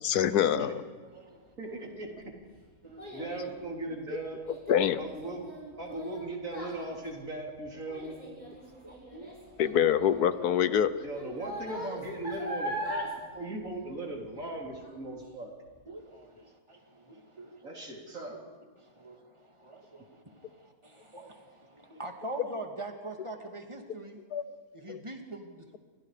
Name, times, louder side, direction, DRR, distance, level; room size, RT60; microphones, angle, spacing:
voice 1, 0.0-0.8 4.7-5.0 9.6-10.9 24.3-24.4 24.9-25.0, left 9 dB, 85° left, 14 dB, 1.4 m, -25 dB
voice 2, 1.0-1.9 2.8-3.4 4.7-4.8 7.7-7.8 8.4-9.6 15.1-15.2 15.9-17.9 18.8-24.2 24.7-25.8, right 2 dB, 20° right, 3 dB, 2.5 m, -45 dB
voice 3, 1.6-2.3 3.1-4.4 5.0-5.4 5.8-8.2 11.0-15.5 17.6-18.4, right 2 dB, 60° right, 0 dB, 4.3 m, -38 dB
Child speech kid speaking, 1.8-14.5 14.8-15.2 15.7-15.8, equal, 25° left, 8.0 m, -41 dB
29.5 x 24.0 x 5.1 m, 1.5 s
omnidirectional pair, 1.6 m